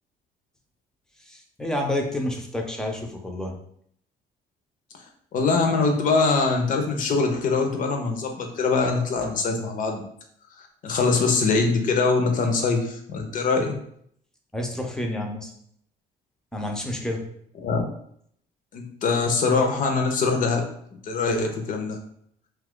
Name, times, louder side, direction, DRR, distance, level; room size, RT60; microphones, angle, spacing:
voice 1, 1.2-3.5 14.5-15.5 16.5-17.2, left 1 dB, 5° left, 1 dB, 0.5 m, -29 dB
voice 2, 5.3-10.0 10.8-13.7 17.6-17.8 18.7-20.6 21.0-22.0, left 4 dB, 50° left, 3 dB, 0.7 m, -23 dB
2.8 x 2.3 x 3.6 m, 0.67 s
cardioid pair, 110°, 17 cm